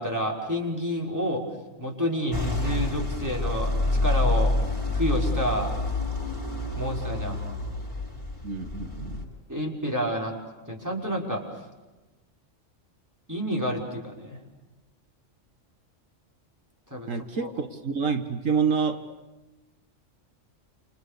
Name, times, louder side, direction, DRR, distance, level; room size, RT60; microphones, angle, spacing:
voice 1, 0.0-1.4 1.8-4.6 4.9-5.7 6.8-7.4 9.5-10.3 10.7-11.4 13.3-14.4 16.9-17.1 17.4-17.5, equal, 15° right, -1 dB, 5.9 m, -29 dB
sound 1, 2.3-9.2, left 2 dB, 25° left, 7.4 m, -28 dB
voice 2, 8.4-9.3 17.1-19.1, right 5 dB, 80° right, 7 dB, 2.1 m, -28 dB
29.5 x 28.5 x 6.9 m, 1.1 s
omnidirectional pair, 1.3 m